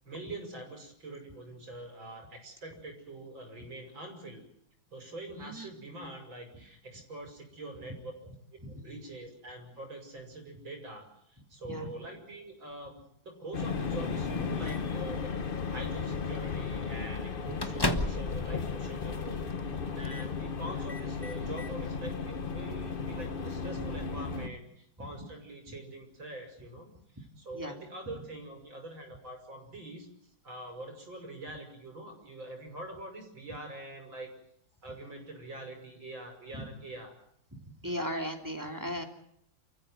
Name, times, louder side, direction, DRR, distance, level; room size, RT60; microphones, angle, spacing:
voice 1, 0.1-4.4 4.9-8.1 8.7-30.1 30.4-34.3 34.8-37.2 37.8-38.1, right 1 dB, 75° right, 3 dB, 6.9 m, -44 dB
voice 2, 5.3-5.7 8.6-8.9 11.6-11.9 19.8-19.9 25.0-25.1 25.7-25.8 27.5-27.8 36.5-36.6 37.5-39.0, equal, 10° right, 4 dB, 2.9 m, -38 dB
sound 1, 13.5-24.5, left 5 dB, 35° left, 0.9 m, -35 dB
Microwave oven, 13.6-15.0 16.0-16.2 16.5-16.7 17.0-18.4 18.7-18.8 19.5-19.7 20.0-20.3 20.7-21.7, left 1 dB, 15° left, 1.2 m, -36 dB
29.0 x 15.0 x 7.8 m, 0.74 s
omnidirectional pair, 2.1 m